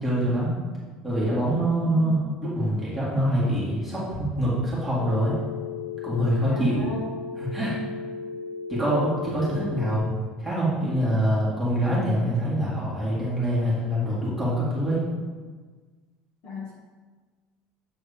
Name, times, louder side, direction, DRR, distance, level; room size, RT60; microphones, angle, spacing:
voice 1, 0.0-0.5 1.0-5.4 6.0-6.9 7.4-7.7 8.7-15.0, equal, ahead, -10 dB, 1.9 m, -25 dB
voice 2, 1.8-2.3 6.5-7.1 16.4-16.7, left 3 dB, 50° left, -4 dB, 1.6 m, -36 dB
Telephone, 5.0-10.0, left 5 dB, 50° right, 1.1 m, -35 dB
7.8 x 3.9 x 5.0 m, 1.4 s
cardioid pair, 180°, 3 cm